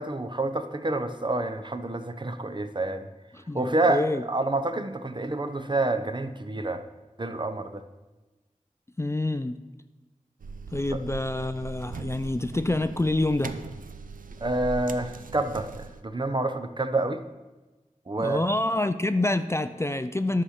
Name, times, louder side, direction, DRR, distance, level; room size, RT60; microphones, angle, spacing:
voice 1, 0.0-3.1 3.5-6.8 7.2-7.8 10.9-11.0 14.4-17.2 18.1-18.4, right 2 dB, 35° right, 9 dB, 0.7 m, -28 dB
voice 2, 3.3-4.2 9.0-9.6 10.7-13.6 18.2-20.4, left 2 dB, 20° left, 11 dB, 0.4 m, -27 dB
sound 1, 10.4-16.0, right 4 dB, 85° right, 0.5 m, -39 dB
9.9 x 5.7 x 6.5 m, 1.1 s
wide cardioid pair, 45°, 14 cm